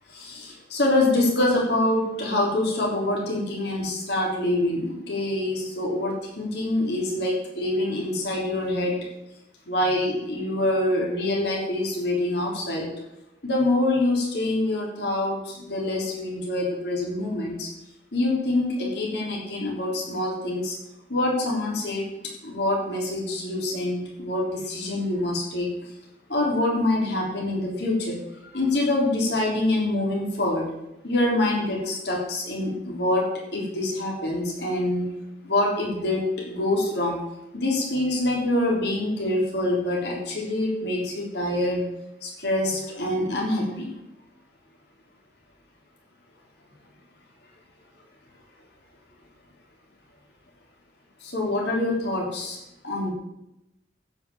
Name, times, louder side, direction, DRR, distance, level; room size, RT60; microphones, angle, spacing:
voice 1, 0.1-9.0 9.7-12.9 13.4-17.7 18.1-20.8 21.1-22.0 22.4-25.7 26.3-28.2 28.5-30.7 31.0-35.1 35.4-37.2 37.5-41.8 42.2-43.9 51.2-52.6 52.8-53.1, left 1 dB, 65° left, -2 dB, 3.6 m, -25 dB
15.0 x 5.4 x 7.4 m, 0.87 s
head